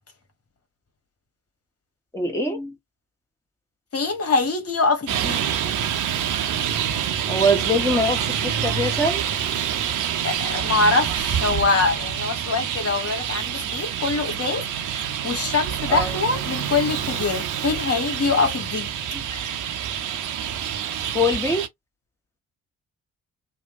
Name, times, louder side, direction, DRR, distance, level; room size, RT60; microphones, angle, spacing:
voice 1, 2.1-2.8 7.3-9.2 15.9-16.2 19.1-19.2 21.1-21.7, equal, 5° left, 1.4 m, -23 dB
voice 2, 3.9-5.4 10.2-18.9 19.3-19.6, left 4 dB, 40° left, 1.3 m, -24 dB
Traffic noise roadway noise, 5.1-21.7, right 9 dB, 50° right, 0.7 m, -27 dB
2.9 x 2.1 x 2.7 m
figure-of-eight pair, 40°, 39 cm